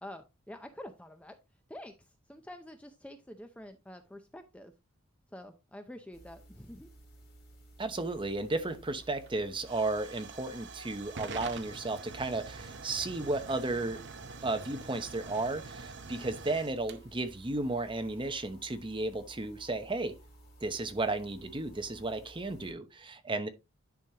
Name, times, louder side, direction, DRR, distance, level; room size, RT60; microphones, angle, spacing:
voice 1, 0.0-1.4 1.7-4.7 5.3-6.9, left 1 dB, 5° left, 0.6 m, -47 dB
sound 1, 6.1-22.7, right 1 dB, 45° left, 4.0 m, -56 dB
voice 2, 7.8-14.0 14.4-20.2 20.6-23.5, right 2 dB, 20° right, 0.9 m, -34 dB
Hiss / Fire / Tick, 8.0-18.4, right 4 dB, 55° right, 0.8 m, -46 dB
10.5 x 5.2 x 2.8 m
head